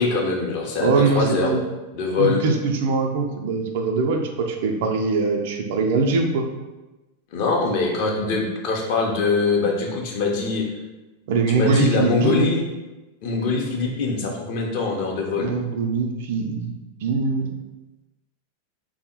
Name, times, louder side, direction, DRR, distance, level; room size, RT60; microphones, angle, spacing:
voice 1, 0.0-1.5 1.9-2.4 7.3-10.7 11.5-12.6 13.2-15.5, left 3 dB, 45° left, -1 dB, 0.6 m, -23 dB
voice 2, 0.8-1.6 2.2-6.4 11.3-12.5 15.4-16.8 17.0-17.5, right 4 dB, 50° right, 4 dB, 0.3 m, -22 dB
3.4 x 2.0 x 2.9 m, 1.1 s
figure-of-eight pair, 90°, 0 cm